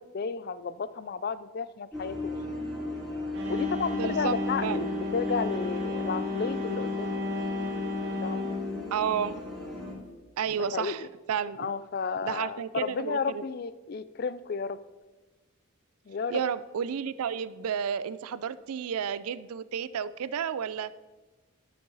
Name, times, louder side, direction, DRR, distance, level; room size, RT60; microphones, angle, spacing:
voice 1, 0.0-2.4 3.5-7.2 8.2-8.5 10.7-11.1 11.6-14.8 16.1-16.4, left 5 dB, 45° left, 15 dB, 0.4 m, -33 dB
sound 1, 1.9-9.9, left 1 dB, ahead, 2.9 m, -36 dB
sound 2, 3.3-10.1, left 3 dB, 50° right, 1.6 m, -34 dB
voice 2, 3.9-4.8 8.9-9.4 10.4-11.7 12.2-13.4 16.3-20.9, right 7 dB, 85° right, 17 dB, 0.4 m, -31 dB
12.0 x 6.7 x 4.0 m, 1.2 s
head